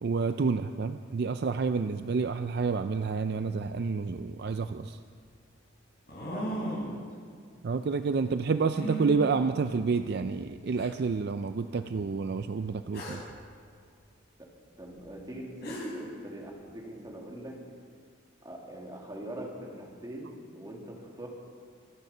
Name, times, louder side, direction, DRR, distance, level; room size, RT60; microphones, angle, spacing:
voice 1, 0.0-5.0 7.6-13.2, right 4 dB, 55° right, 9 dB, 0.4 m, -29 dB
sound 1, 6.1-7.0 8.7-9.1 10.1-10.2 10.8-10.9 12.9-13.3 15.3-15.4 15.6-16.1, equal, 55° left, 4.5 m, -35 dB
voice 2, 6.2-7.2 14.4-14.5 14.8-17.6 18.4-21.3, right 1 dB, 20° right, -1 dB, 2.4 m, -43 dB
25.5 x 9.3 x 5.5 m, 2.2 s
head